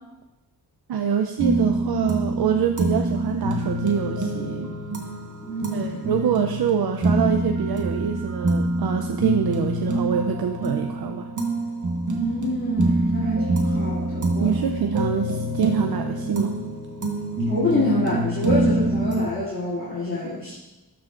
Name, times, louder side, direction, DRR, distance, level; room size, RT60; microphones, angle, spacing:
voice 1, 0.9-4.7 5.7-11.3 14.4-16.6, right 7 dB, 70° right, 5 dB, 0.6 m, -25 dB
sound 1, 1.4-19.3, right 2 dB, 50° right, 1.2 m, -26 dB
voice 2, 5.4-6.1 12.1-14.5 17.5-20.6, left 1 dB, 35° left, -11 dB, 2.6 m, -26 dB
13.0 x 4.7 x 2.5 m, 1.0 s
cardioid pair, 65°, 39 cm